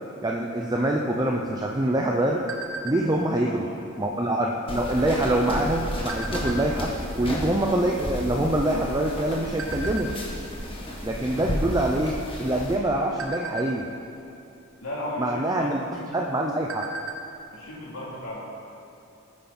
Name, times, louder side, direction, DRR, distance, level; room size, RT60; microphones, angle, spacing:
voice 1, 0.2-2.4 2.8-3.7 4.0-6.9 7.2-10.1 11.0-12.1 12.4-13.9 15.2-16.8, right 1 dB, 20° right, 0 dB, 0.7 m, -25 dB
sound 1, 1.4-3.3 3.8-4.0 4.3-4.7 5.4-6.9 7.5-7.6 7.8-9.1 9.6-10.1 10.6-10.9 11.2-11.4 11.8-12.4 12.8-14.2 15.3-15.4 15.8-15.9 16.3-17.3 17.6-17.7 18.1-18.2, right 3 dB, 80° right, 1.3 m, -36 dB
voice 2, 2.9-3.8 11.1-11.4 14.8-15.7 17.5-18.5, left 1 dB, 90° left, -6 dB, 3.4 m, -35 dB
sound 2, 4.7-12.8, equal, 25° left, 2.1 m, -32 dB
20.0 x 9.5 x 4.3 m, 2.7 s
head